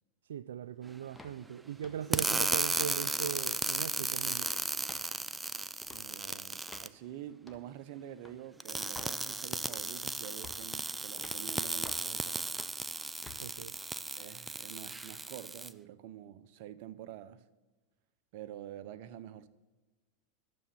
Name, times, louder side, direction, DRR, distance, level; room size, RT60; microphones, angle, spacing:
voice 1, 0.2-4.5 13.4-13.7, right 9 dB, 80° right, 0.3 m, -39 dB
sound 1, 1.2-1.4 1.8-2.1 2.5-3.0 3.3-3.4 3.7-4.4 4.8-5.1 5.8-6.0 6.7-6.9 7.5-7.7 8.2-8.4 8.9-9.2 9.7-10.0 10.4-10.7 11.2-11.4 11.8-12.1 12.6-12.8 13.2-13.4, left 3 dB, 10° left, 1.4 m, -51 dB
sound 2, 2.1-6.9 8.6-15.7, right 3 dB, 10° right, 0.4 m, -35 dB
voice 2, 5.9-12.6 14.2-17.4 18.3-19.5, right 11 dB, 60° right, 0.8 m, -47 dB
12.5 x 7.0 x 7.3 m
hypercardioid pair, 105°, 0 cm